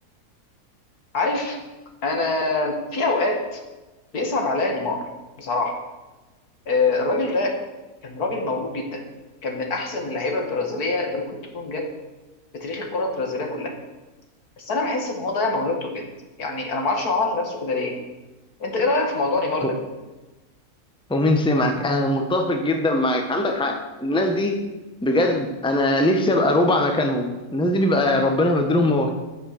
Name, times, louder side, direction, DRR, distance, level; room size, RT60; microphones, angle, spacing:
voice 1, 1.1-1.6 2.0-3.6 4.1-5.0 5.4-5.8 6.7-7.6 8.0-9.0 9.4-11.9 12.5-13.7 14.6-16.1 16.4-18.0 18.6-19.8, left 3 dB, 75° left, 3 dB, 2.3 m, -25 dB
voice 2, 21.1-24.6 25.0-29.1, left 1 dB, 5° left, 4 dB, 1.1 m, -21 dB
15.0 x 6.6 x 6.6 m, 1.1 s
omnidirectional pair, 1.6 m